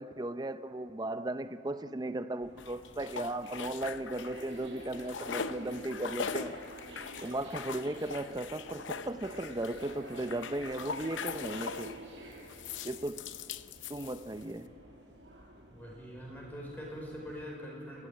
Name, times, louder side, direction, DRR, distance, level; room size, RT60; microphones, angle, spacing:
voice 1, 0.0-6.6 7.2-12.0 12.8-13.3 13.9-14.7, right 1 dB, 20° right, 0.6 m, -36 dB
sound 1, 2.4-17.4, right 1 dB, 80° right, 5.6 m, -50 dB
sound 2, 2.6-4.5 4.8-12.0 12.5-14.5, left 6 dB, 90° left, 0.7 m, -41 dB
voice 2, 15.7-18.1, equal, 10° left, 5.6 m, -43 dB
29.5 x 14.5 x 8.8 m
head